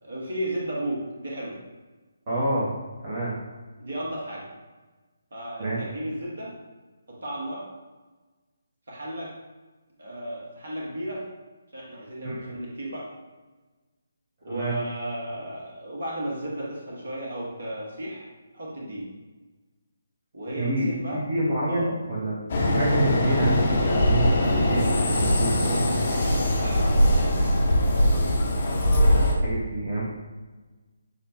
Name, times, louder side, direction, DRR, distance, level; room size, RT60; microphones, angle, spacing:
voice 1, 0.0-1.6 3.8-4.4 5.3-6.5 7.1-7.7 8.9-9.3 10.0-11.3 11.7-13.1 14.4-18.3 18.5-19.1 20.3-21.2 21.7-21.9 23.3-23.4 26.5-27.5, right 1 dB, 55° right, -4 dB, 1.2 m, -34 dB
voice 2, 2.3-2.7 3.0-3.3 5.6-5.8 12.2-12.5 14.5-14.8 20.6-20.9 21.3-22.4 22.7-24.8 25.2-25.8 29.4-30.0, right 1 dB, 30° right, -8 dB, 0.8 m, -27 dB
sound 1, 22.5-29.3, left 1 dB, 40° left, 0.7 m, -21 dB
6.3 x 2.2 x 2.7 m, 1.3 s
figure-of-eight pair, 145°, 0 cm